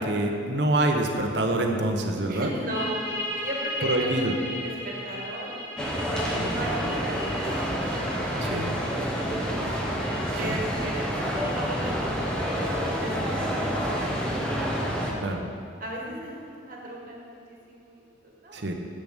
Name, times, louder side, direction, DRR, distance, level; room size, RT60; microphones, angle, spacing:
voice 1, 0.0-2.5 3.8-4.3 6.4-6.5 8.4-8.7 10.4-10.5 15.2-15.4 18.5-18.7, right 2 dB, 60° right, 3 dB, 1.0 m, -26 dB
voice 2, 2.3-3.0 3.3-5.6 6.0-9.7 10.4-11.4 11.7-12.7 13.0-13.8 14.3-14.9 15.8-18.7, right 1 dB, 45° right, -3 dB, 1.9 m, -37 dB
sound 1, 2.7-14.1, left 1 dB, 15° right, 2.3 m, -38 dB
sound 2, 5.8-15.1, equal, 5° left, 1.1 m, -28 dB
7.8 x 7.0 x 8.1 m, 2.4 s
head